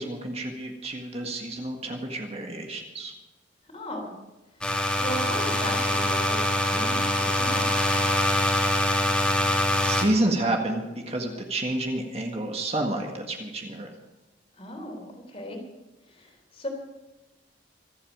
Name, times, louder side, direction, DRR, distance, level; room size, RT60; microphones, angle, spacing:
voice 1, 0.0-3.1 9.4-13.9, right 1 dB, 35° right, 2 dB, 1.7 m, -29 dB
voice 2, 3.7-4.1 5.0-7.8 14.6-15.6 16.1-16.7, equal, 30° left, 2 dB, 3.5 m, -36 dB
sound 1, 4.6-10.0, left 1 dB, 5° left, 2.1 m, -24 dB
25.5 x 8.7 x 5.0 m, 1.1 s
head